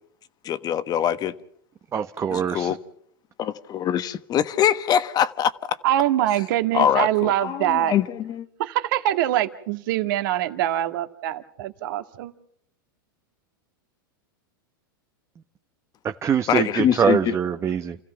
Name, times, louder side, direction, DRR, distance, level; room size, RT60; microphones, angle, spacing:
voice 1, 0.4-1.3 2.3-2.8 3.4-5.8 6.7-8.5 16.5-17.3, left 9 dB, 35° left, 1.3 m, -23 dB
voice 2, 1.9-2.7 16.0-18.0, right 7 dB, 25° right, 0.9 m, -23 dB
voice 3, 5.8-7.9 8.6-12.3, right 13 dB, 65° right, 1.8 m, -24 dB
29.5 x 15.5 x 5.9 m
hypercardioid pair, 110°, 12 cm